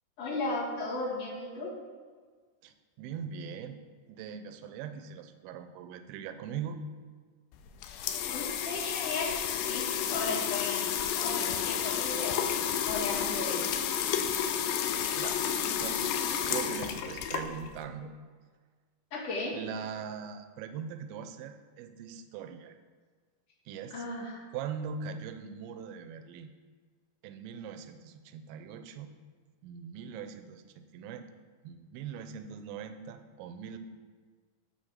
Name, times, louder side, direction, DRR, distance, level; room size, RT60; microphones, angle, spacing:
voice 1, 0.2-1.7 8.3-9.3 9.6-10.9 11.1-12.3 12.8-13.7 19.1-19.6 23.9-24.4, left 2 dB, 45° left, -8 dB, 2.7 m, -35 dB
voice 2, 2.6-3.8 4.1-6.8 15.2-18.1 19.5-22.8 23.7-24.1 24.5-26.5 27.2-29.1 29.6-31.3 31.6-33.8, right 7 dB, 80° right, 8 dB, 2.3 m, -41 dB
sound 1, 7.5-17.8, left 9 dB, 80° left, 2.2 m, -31 dB
7.7 x 3.4 x 6.5 m, 1.5 s
omnidirectional pair, 4.2 m